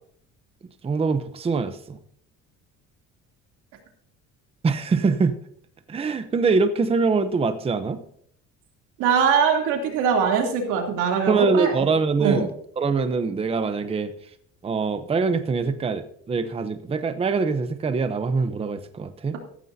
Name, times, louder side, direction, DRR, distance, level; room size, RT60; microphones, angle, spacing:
voice 1, 0.8-2.0 4.6-5.3 5.9-8.0 11.3-12.5 12.8-14.1 14.6-19.3, right 4 dB, 20° right, 10 dB, 0.8 m, -23 dB
voice 2, 9.0-11.7 12.2-12.4, right 6 dB, 90° right, 2 dB, 3.1 m, -22 dB
14.5 x 13.5 x 2.8 m, 0.65 s
cardioid pair, 140°, 30 cm